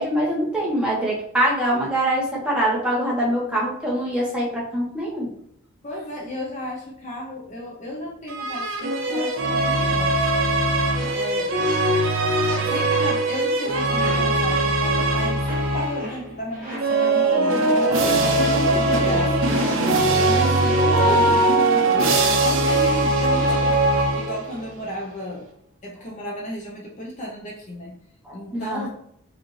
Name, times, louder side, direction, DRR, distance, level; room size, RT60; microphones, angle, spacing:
voice 1, 0.0-5.3 28.2-28.9, right 1 dB, 5° right, -6 dB, 1.2 m, -24 dB
voice 2, 5.8-10.2 11.1-11.5 12.6-19.6 20.1-21.4 22.4-25.5 25.8-28.0 28.3-28.9, equal, 35° left, -2 dB, 0.7 m, -33 dB
sound 1, 8.3-16.1 16.7-24.7, right 2 dB, 70° right, 0.6 m, -21 dB
sound 2, 10.4-10.5 11.0-12.0 12.5-13.3 14.0-17.1 17.5-20.4 21.0-21.4 22.0-23.9, left 1 dB, 40° right, 1.7 m, -37 dB
4.9 x 2.6 x 3.2 m, 0.71 s
head